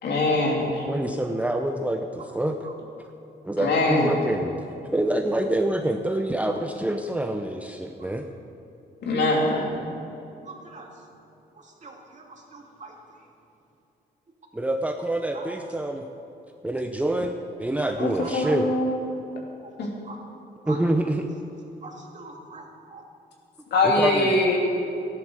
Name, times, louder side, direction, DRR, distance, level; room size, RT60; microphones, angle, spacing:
voice 1, 0.0-0.8 3.6-4.2 9.0-9.7 18.0-19.0 19.8-19.9 23.7-24.6, left 2 dB, 75° left, -1 dB, 2.9 m, -23 dB
voice 2, 0.9-2.6 3.4-8.2 14.5-16.0 16.6-18.7 20.7-21.3 23.8-24.3, right 1 dB, 10° right, 3 dB, 0.8 m, -26 dB
voice 3, 10.4-10.9 11.6-12.9 15.3-15.5 18.2-18.6 20.0-20.2 20.6-21.2 21.8-23.0, right 3 dB, 40° right, 0 dB, 2.5 m, -42 dB
13.0 x 11.0 x 6.5 m, 2.9 s
cardioid pair, 95°, 18 cm